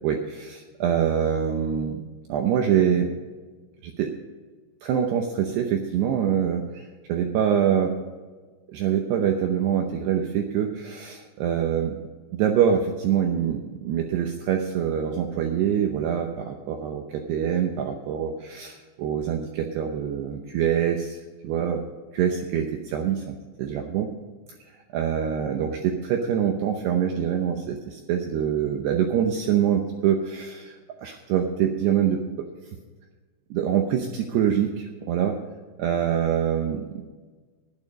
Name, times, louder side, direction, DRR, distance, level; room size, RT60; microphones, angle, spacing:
voice 1, 0.0-2.0 2.3-3.2 3.8-4.1 4.8-8.0 8.7-12.0 12.3-21.2 21.4-21.8 22.1-24.1 24.9-32.5 33.5-35.4 35.8-37.0, right 8 dB, 85° right, 3 dB, 2.3 m, -25 dB
12.0 x 11.0 x 5.3 m, 1.4 s
omnidirectional pair, 6.0 m